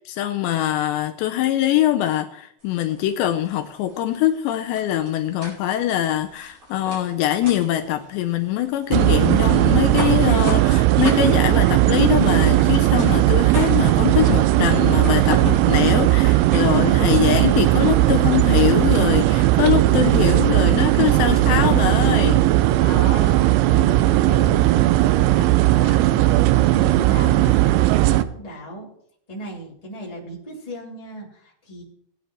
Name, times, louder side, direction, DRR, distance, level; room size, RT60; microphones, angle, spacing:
voice 1, 0.0-22.4, left 12 dB, 80° left, 7 dB, 2.9 m, -23 dB
sound 1, 2.6-19.1, equal, 30° right, 5.3 m, -38 dB
sound 2, 8.9-28.2, right 16 dB, 85° right, 2.9 m, -17 dB
voice 2, 22.5-28.9 29.3-31.8, right 1 dB, 10° left, -4 dB, 2.7 m, -36 dB
19.5 x 9.5 x 3.2 m, 0.69 s
omnidirectional pair, 5.2 m